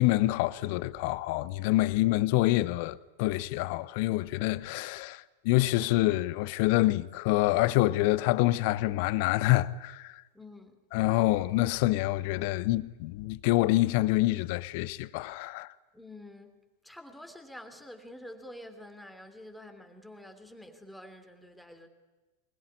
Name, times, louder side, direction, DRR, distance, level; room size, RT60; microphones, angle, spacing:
voice 1, 0.0-10.2 10.9-15.7, left 17 dB, 45° left, 0.8 m, -26 dB
voice 2, 10.3-10.8 15.9-16.6 16.8-21.9, left 1 dB, ahead, 3.1 m, -48 dB
24.5 x 21.5 x 10.0 m
figure-of-eight pair, 90°, 0 cm